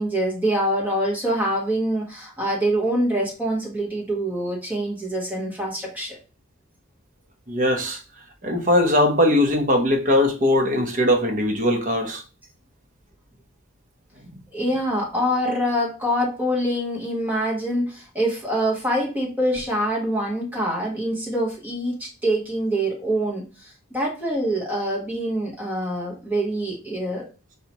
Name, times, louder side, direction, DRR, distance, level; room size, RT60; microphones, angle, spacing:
voice 1, 0.0-6.2 14.5-27.2, equal, 10° right, 1.3 m, -25 dB
voice 2, 7.5-8.0 8.4-12.2, left 1 dB, 40° right, 0.8 m, -20 dB
4.8 x 2.9 x 2.9 m
head